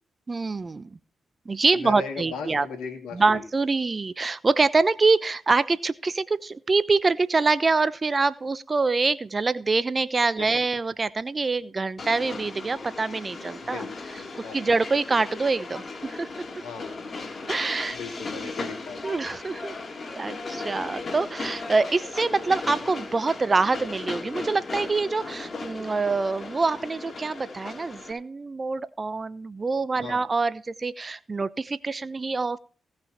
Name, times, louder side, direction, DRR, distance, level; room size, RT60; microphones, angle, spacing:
voice 1, 0.3-0.9 1.5-2.7 3.1-13.9 14.5-16.3 17.5-18.0 18.4-18.5 19.0-19.7 20.2-32.6, right 3 dB, 40° right, 17 dB, 0.8 m, -25 dB
voice 2, 1.7-3.4 10.4-10.5 13.6-14.8 16.6-17.0 17.9-19.0 29.9-30.2, left 5 dB, 80° left, 3 dB, 2.6 m, -38 dB
Train, 12.0-28.1, left 3 dB, 50° left, 3.4 m, -37 dB
17.0 x 6.2 x 4.3 m, 0.39 s
hypercardioid pair, 40°, 0 cm